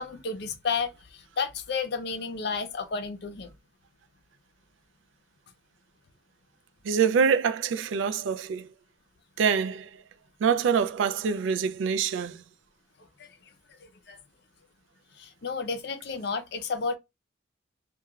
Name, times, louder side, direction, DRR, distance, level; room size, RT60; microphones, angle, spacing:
voice 1, 0.0-3.5 13.2-13.5 13.8-14.2 15.2-17.0, left 5 dB, 55° left, 0.5 m, -32 dB
voice 2, 6.8-8.7 9.4-10.0 10.4-12.4, right 6 dB, 80° right, 0.3 m, -25 dB
2.3 x 2.2 x 3.0 m
head